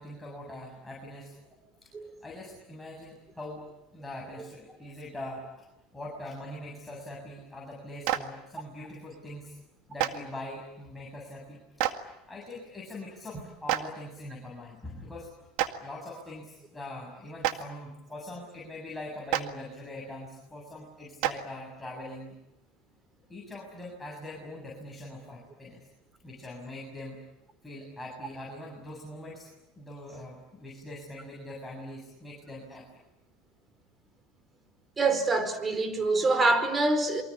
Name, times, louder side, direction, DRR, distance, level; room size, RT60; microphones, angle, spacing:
voice 1, 0.0-1.3 1.8-1.9 2.2-3.6 3.9-5.7 5.9-9.6 9.9-15.3 15.8-22.4 23.3-25.8 26.2-27.2 27.6-29.5 29.8-32.9, left 1 dB, 10° left, 7.3 m, -42 dB
Clapping, 8.0-8.2 10.0-10.1 11.8-11.9 13.7-13.8 15.6-15.7 17.4-17.5 19.3-19.4 21.2-21.3, right 15 dB, 70° right, 1.9 m, -26 dB
voice 2, 35.0-37.2, right 3 dB, 25° right, 4.7 m, -25 dB
28.0 x 24.0 x 8.5 m
supercardioid pair, 95°, 0 cm